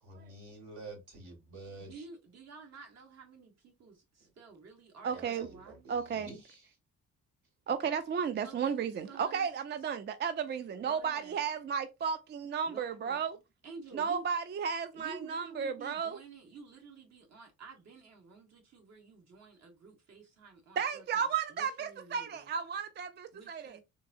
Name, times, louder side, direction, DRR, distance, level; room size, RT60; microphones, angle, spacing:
voice 1, 0.1-1.9 5.1-6.7, right 2 dB, 75° right, 2.2 m, -49 dB
voice 2, 1.8-5.9 8.4-8.7 9.1-9.5 10.7-11.4 12.6-13.2 13.6-14.3 14.9-22.5 23.3-23.8, right 4 dB, 60° right, 1.6 m, -51 dB
voice 3, 5.0-5.5 5.9-6.3 7.7-13.4 13.9-16.2 20.8-23.8, right 7 dB, 35° right, 0.4 m, -33 dB
3.9 x 2.7 x 2.6 m
cardioid pair, 90°, 30 cm